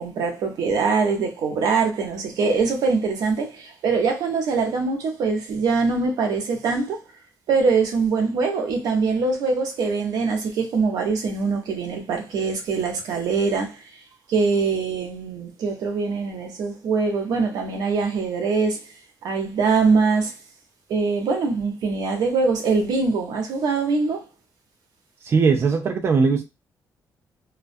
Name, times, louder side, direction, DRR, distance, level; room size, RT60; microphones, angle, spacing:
voice 1, 0.0-7.0 7.5-13.8 14.3-18.8 19.2-20.3 20.9-24.2, right 4 dB, 80° right, 0.7 m, -23 dB
voice 2, 25.2-26.4, right 5 dB, 40° right, 0.4 m, -19 dB
2.2 x 2.2 x 2.5 m
cardioid pair, 130°, 7 cm